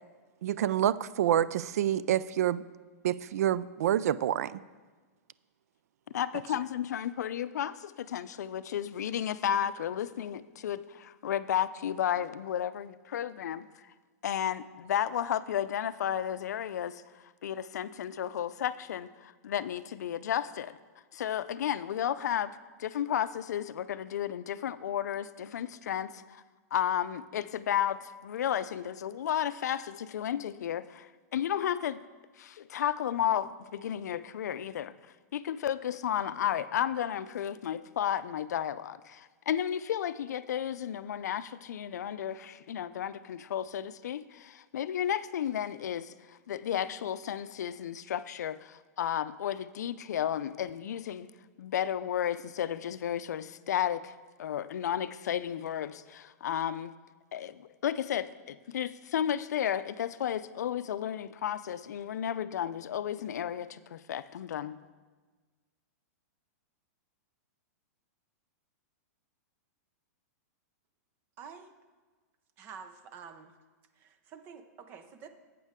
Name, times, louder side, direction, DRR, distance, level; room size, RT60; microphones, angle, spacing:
voice 1, 0.4-2.6 3.0-4.6, right 11 dB, 65° right, 18 dB, 0.4 m, -27 dB
voice 2, 6.1-13.9 14.2-20.8 21.1-26.4 26.7-32.0 32.4-51.3 51.6-56.9 57.3-64.8, left 10 dB, 85° left, 15 dB, 0.5 m, -33 dB
voice 3, 71.4-71.7 72.6-73.5 74.0-75.3, right 6 dB, 20° right, 8 dB, 0.6 m, -48 dB
12.0 x 8.3 x 3.6 m, 1.4 s
supercardioid pair, 170°, 9 cm